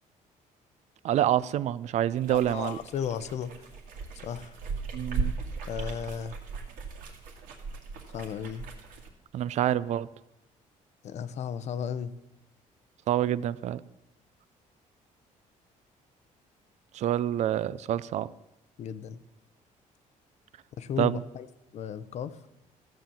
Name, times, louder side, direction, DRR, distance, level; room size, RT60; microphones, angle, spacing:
voice 1, 1.0-2.8 4.9-5.3 9.3-10.1 13.1-13.8 16.9-18.3 21.0-21.2, right 11 dB, 55° right, 18 dB, 0.5 m, -27 dB
sound 1, 2.2-9.1, right 4 dB, 80° right, 2.2 m, -37 dB
voice 2, 2.3-3.5 4.2-4.5 5.7-6.4 8.1-8.6 11.0-12.1 18.8-19.2 20.8-21.5 21.7-22.4, left 8 dB, 55° left, 14 dB, 0.7 m, -34 dB
14.0 x 7.6 x 7.1 m, 0.90 s
cardioid pair, 145°, 14 cm